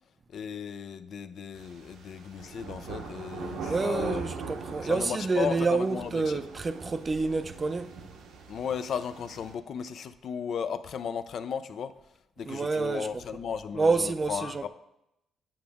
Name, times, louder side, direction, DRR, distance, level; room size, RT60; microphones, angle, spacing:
voice 1, 0.3-4.3 4.8-6.4 8.5-11.9 12.4-14.7, left 7 dB, 65° left, 0.4 m, -35 dB
sound 1, 1.5-9.5, right 4 dB, 90° right, 0.9 m, -41 dB
voice 2, 3.7-7.9 12.5-13.1 13.8-14.6, right 4 dB, 30° right, 0.4 m, -28 dB
8.7 x 5.0 x 3.5 m
cardioid pair, 90°, 0 cm